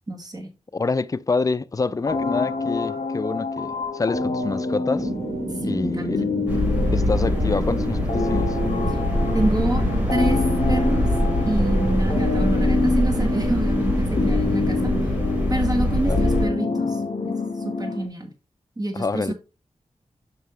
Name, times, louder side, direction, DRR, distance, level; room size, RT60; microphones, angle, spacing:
voice 1, 0.1-0.5 5.6-6.1 9.3-9.8 10.1-11.1 11.5-14.9 15.5-17.3 17.6-18.3 18.8-19.3, right 1 dB, 30° right, 1.7 m, -27 dB
voice 2, 0.7-5.1 5.6-6.2 6.9-8.6 16.0-16.2 18.9-19.3, left 3 dB, 30° left, 0.4 m, -26 dB
sound 1, 2.1-18.1, left 3 dB, 60° left, 1.5 m, -27 dB
sound 2, 4.9-15.1, right 3 dB, 55° right, 1.1 m, -31 dB
sound 3, 6.5-16.4, left 1 dB, 15° right, 3.3 m, -23 dB
6.9 x 5.5 x 3.2 m
wide cardioid pair, 70°, 12 cm